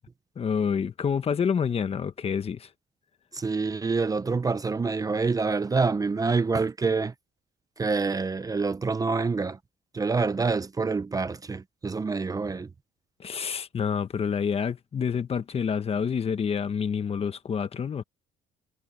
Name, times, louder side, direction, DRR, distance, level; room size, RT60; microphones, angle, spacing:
voice 1, 0.4-2.7 13.2-18.0, left 6 dB, 35° left, 1.3 m, -28 dB
voice 2, 3.3-7.1 7.8-9.6 9.9-12.7, right 4 dB, 20° right, 0.8 m, -26 dB
cardioid pair, 110°, 17 cm